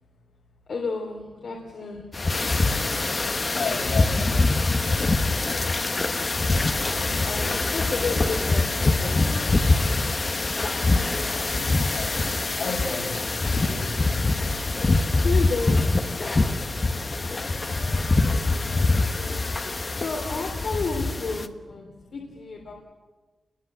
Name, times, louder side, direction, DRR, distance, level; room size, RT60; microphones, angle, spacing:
voice 1, 0.7-2.1 4.2-4.3 6.7-9.2 15.0-17.1 19.1-19.4 20.0-22.7, left 4 dB, 70° left, 1 dB, 3.3 m, -33 dB
sound 1, 2.1-21.5, left 3 dB, 35° left, 1.3 m, -24 dB
voice 2, 3.4-4.6 10.9-13.9 17.2-17.3 19.7-20.0, left 3 dB, 85° left, 1 dB, 6.0 m, -35 dB
28.0 x 21.5 x 8.1 m, 1.3 s
wide cardioid pair, 100°, 0 cm